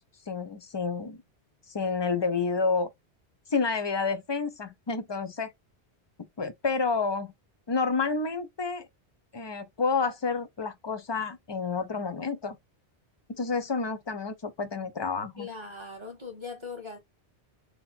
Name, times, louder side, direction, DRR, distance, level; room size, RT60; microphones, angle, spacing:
voice 1, 0.3-1.2 1.7-2.9 3.5-5.5 6.4-7.3 7.7-8.9 9.3-12.6 13.4-15.5, left 4 dB, 30° left, 0.5 m, -29 dB
voice 2, 15.3-17.0, left 4 dB, 25° right, 1.6 m, -40 dB
3.9 x 2.9 x 2.7 m
omnidirectional pair, 1.1 m